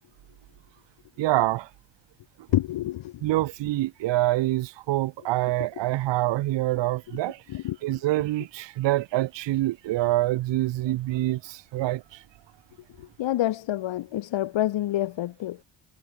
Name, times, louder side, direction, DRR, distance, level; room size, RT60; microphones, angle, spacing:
voice 1, 1.2-1.7 3.2-7.4 7.8-12.2, right 16 dB, 75° right, 0.6 m, -26 dB
voice 2, 2.5-3.1 7.5-7.8 13.0-15.6, left 14 dB, 90° left, 1.1 m, -27 dB
cardioid pair, 105°, 44 cm